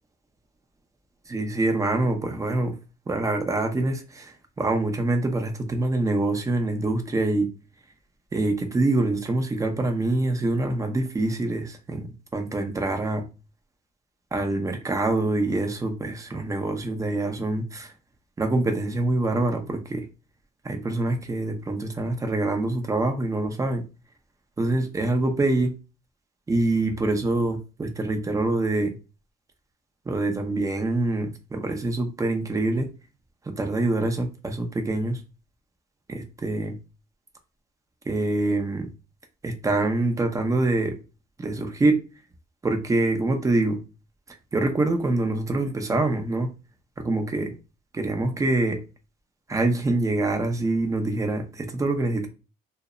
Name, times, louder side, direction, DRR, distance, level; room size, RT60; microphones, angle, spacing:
voice 1, 1.3-2.7 3.1-7.5 8.3-13.3 14.3-17.9 18.4-20.0 20.6-23.8 24.6-25.7 26.5-29.0 30.1-32.9 33.5-35.2 36.1-36.8 38.1-38.9 39.4-41.0 41.4-42.0 42.6-43.8 44.5-46.5 47.0-47.5 47.9-48.8 49.5-52.3, right 2 dB, 20° right, 0.6 m, -25 dB
2.0 x 2.0 x 3.6 m
cardioid pair, 110°, 17 cm